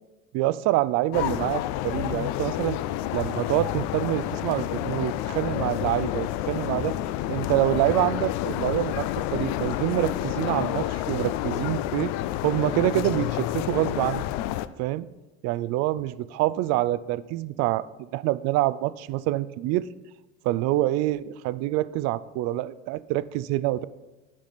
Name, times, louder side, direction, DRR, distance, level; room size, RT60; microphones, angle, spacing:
voice 1, 0.3-2.8 3.1-6.9 7.3-12.1 12.4-14.2 14.8-15.1 15.4-17.9 18.1-19.9 20.4-23.8, right 16 dB, 55° right, 17 dB, 0.4 m, -26 dB
sound 1, 1.1-14.7, left 14 dB, 60° left, 0.5 m, -29 dB
10.5 x 4.9 x 4.2 m, 1.1 s
hypercardioid pair, 80°, 31 cm